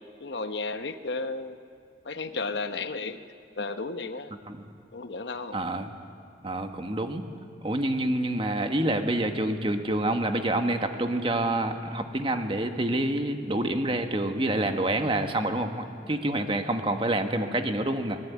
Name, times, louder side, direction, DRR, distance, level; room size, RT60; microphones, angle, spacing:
voice 1, 0.2-1.6 2.0-3.2 3.6-4.3 4.9-5.6, left 3 dB, 75° left, 9 dB, 0.9 m, -33 dB
voice 2, 5.5-5.9 6.4-7.3 7.6-18.2, right 1 dB, 30° right, 6 dB, 1.4 m, -27 dB
23.0 x 20.0 x 8.4 m, 2.5 s
head